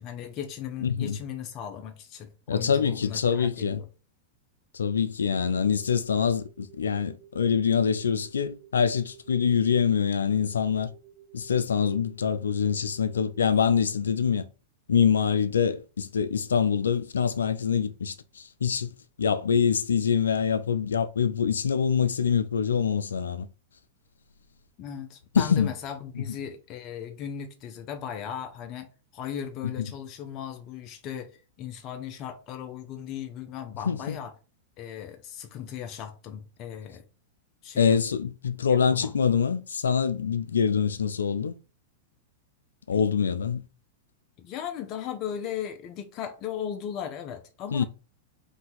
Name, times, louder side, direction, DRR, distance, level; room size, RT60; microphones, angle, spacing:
voice 1, 0.0-3.9 24.8-34.3 34.8-37.0 37.6-38.0 38.7-39.1 44.4-47.8, left 9 dB, 40° left, 0.7 m, -37 dB
voice 2, 0.8-1.2 2.5-3.8 4.7-10.9 11.3-14.5 14.9-18.9 19.2-23.5 25.3-25.7 26.2-26.3 29.8-29.9 33.8-34.2 37.8-41.5 42.9-43.6 47.7-47.8, left 7 dB, 90° left, 0.4 m, -25 dB
sound 1, 5.4-13.7, right 10 dB, 65° left, 1.5 m, -54 dB
4.0 x 2.8 x 3.9 m
hypercardioid pair, 110°, 0 cm